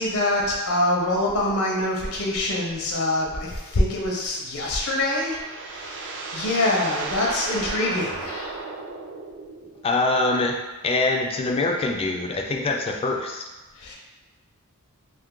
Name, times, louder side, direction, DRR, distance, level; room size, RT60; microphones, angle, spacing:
voice 1, 0.0-5.4 5.7-8.6 13.8-13.9, left 1 dB, 75° left, -2 dB, 0.6 m, -25 dB
sound 1, 4.7-9.8, right 3 dB, 60° right, 0.4 m, -34 dB
voice 2, 9.8-10.6 10.8-13.4, left 2 dB, 25° left, 2 dB, 0.3 m, -24 dB
2.6 x 2.4 x 3.6 m, 1.1 s
head